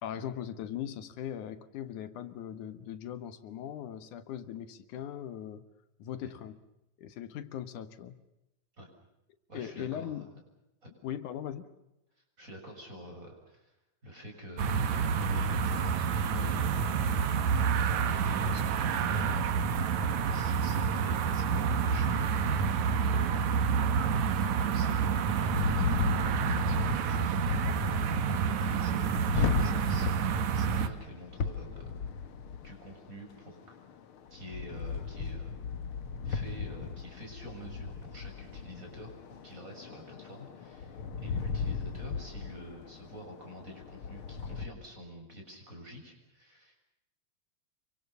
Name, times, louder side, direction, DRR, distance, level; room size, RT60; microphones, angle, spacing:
voice 1, 0.0-5.6 6.0-6.6 7.0-8.2 9.5-10.3 11.0-11.7, left 10 dB, 85° left, 11 dB, 2.8 m, -39 dB
voice 2, 9.5-10.2 10.8-10.9 12.4-13.8 14.0-17.2 17.9-19.5 20.3-22.5 22.8-23.9 24.3-31.9 32.6-33.6 34.3-35.5 36.2-39.2 39.4-46.8, equal, 25° right, 2 dB, 7.3 m, -47 dB
sound 1, 14.6-30.9, right 6 dB, 70° right, 2.7 m, -28 dB
sound 2, 25.5-44.7, left 5 dB, 55° left, 1.9 m, -36 dB
28.5 x 24.5 x 6.8 m, 0.89 s
omnidirectional pair, 3.4 m